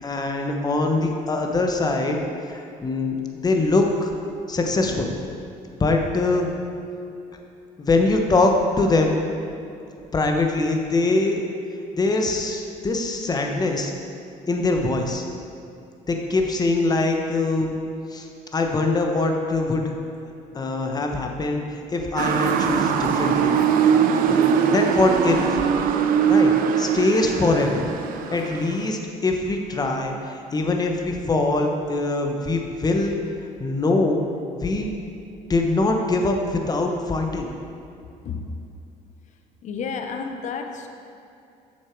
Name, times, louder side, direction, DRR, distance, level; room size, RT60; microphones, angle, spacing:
voice 1, 0.0-3.2 3.4-4.1 4.5-5.1 5.7-6.5 7.8-9.1 10.1-11.4 11.9-13.9 14.5-15.2 16.1-17.7 18.1-19.9 20.5-23.6 24.2-25.6 26.3-27.9 28.3-33.2 33.6-34.2 34.5-34.9 35.5-37.5, left 2 dB, 25° left, 3 dB, 1.0 m, -23 dB
Motor vehicle (road) / Siren, 22.2-28.9, right 7 dB, 70° right, 0.6 m, -21 dB
voice 2, 38.2-38.6 39.6-40.9, left 5 dB, 55° left, 5 dB, 0.7 m, -31 dB
7.2 x 6.5 x 4.6 m, 2.6 s
cardioid pair, 90°, 15 cm